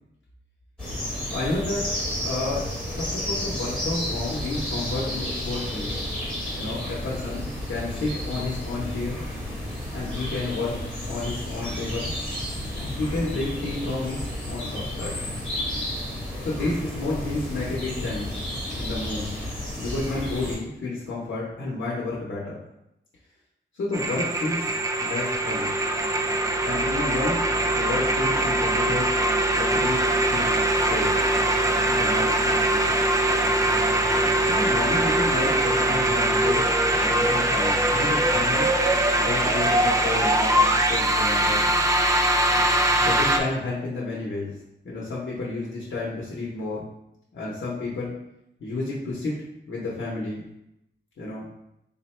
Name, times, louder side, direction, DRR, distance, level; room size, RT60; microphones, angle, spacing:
sound 1, 0.8-20.6, left 1 dB, 5° left, 1.1 m, -32 dB
voice 1, 1.3-2.7 3.0-6.0 6.6-9.2 9.9-10.8 11.0-12.2 12.8-15.2 16.4-18.4 18.7-19.4 19.8-22.6 23.7-24.7 25.0-25.7 26.6-27.4 27.7-29.1 29.5-30.0 30.3-30.5 30.8-31.1 31.8-32.8 34.5-38.7 39.2-41.6 43.0-44.6 44.8-46.9 47.3-48.1 48.6-49.3 49.7-50.5 51.2-51.5, left 2 dB, 70° left, -5 dB, 0.8 m, -31 dB
sound 2, 23.9-43.4, right 1 dB, 15° right, 0.3 m, -22 dB
3.8 x 2.1 x 4.2 m, 0.85 s
wide cardioid pair, 150°, 20 cm